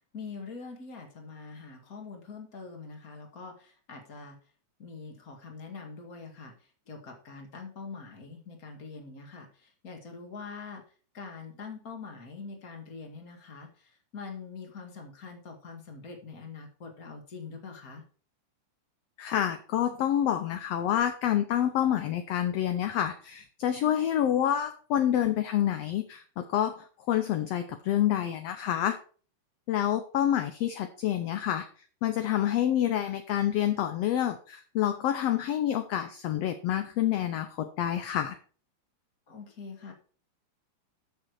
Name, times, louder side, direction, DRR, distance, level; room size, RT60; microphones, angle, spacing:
voice 1, 0.1-4.4 4.8-6.5 6.9-10.8 11.1-18.0 39.3-39.9, left 4 dB, 30° left, 3 dB, 2.3 m, -44 dB
voice 2, 19.2-29.0 29.7-31.7 32.0-38.4, left 11 dB, 70° left, 8 dB, 1.8 m, -28 dB
13.5 x 6.2 x 4.7 m, 0.41 s
omnidirectional pair, 3.3 m